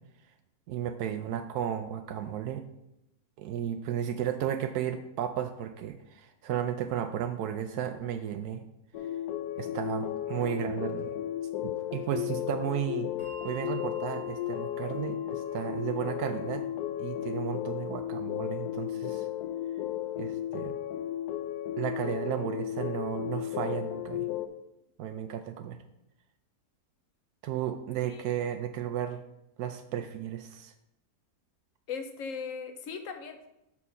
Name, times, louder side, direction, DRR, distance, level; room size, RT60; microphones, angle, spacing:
voice 1, 0.7-2.6 3.4-8.6 9.6-11.2 11.6-13.1 13.4-16.6 17.0-19.3 20.2-20.7 21.8-24.3 25.0-25.8 27.4-29.2 29.6-30.7, right 10 dB, 85° right, 7 dB, 1.1 m, -34 dB
sound 1, 8.9-24.5, left 12 dB, 90° left, 1.1 m, -34 dB
Bell, 13.2-20.1, left 1 dB, 20° right, 1.1 m, -51 dB
voice 2, 31.9-33.5, left 5 dB, 65° left, 6 dB, 1.1 m, -38 dB
7.2 x 4.4 x 5.5 m, 0.87 s
omnidirectional pair, 1.6 m